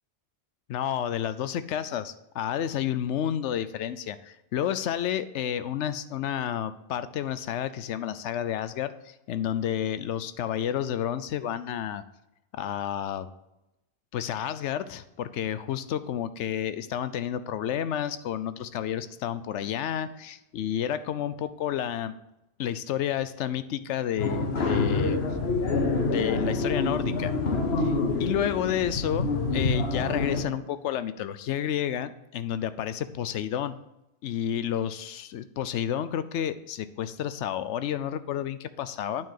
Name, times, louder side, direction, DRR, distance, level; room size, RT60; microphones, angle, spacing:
voice 1, 0.7-12.0 12.5-13.3 14.1-22.1 22.6-25.2 26.1-27.3 27.8-27.9 28.2-33.7 34.2-39.3, left 10 dB, 85° left, 13 dB, 0.9 m, -30 dB
sound 1, 24.2-30.4, left 3 dB, 65° left, 1.3 m, -27 dB
9.1 x 4.6 x 7.5 m, 0.89 s
omnidirectional pair, 1.2 m